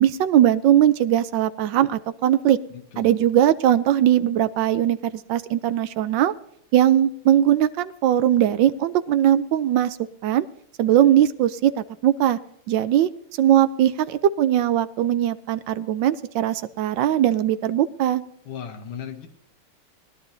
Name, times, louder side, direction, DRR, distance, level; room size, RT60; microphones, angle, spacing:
voice 1, 0.0-2.6 3.0-5.0 5.3-6.3 6.7-10.0 10.2-10.5 10.8-11.7 12.0-12.4 12.7-13.1 13.4-18.2, right 11 dB, 75° right, 13 dB, 1.1 m, -20 dB
voice 2, 2.7-3.1 18.5-19.3, left 8 dB, 85° left, 3 dB, 2.2 m, -36 dB
20.0 x 11.5 x 2.7 m, 0.73 s
omnidirectional pair, 2.4 m